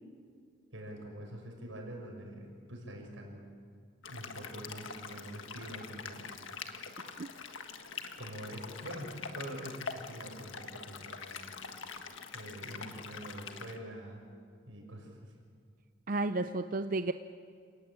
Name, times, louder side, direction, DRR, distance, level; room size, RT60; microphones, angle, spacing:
voice 1, 0.7-3.4 4.0-6.3 8.2-11.5 12.3-14.3 14.7-15.2, right 1 dB, 80° right, 1 dB, 6.3 m, -45 dB
sound 1, 4.0-13.8, left 5 dB, 80° left, 1.6 m, -44 dB
voice 2, 16.1-17.1, right 2 dB, 45° right, 9 dB, 0.6 m, -32 dB
29.5 x 18.5 x 8.8 m, 2.1 s
head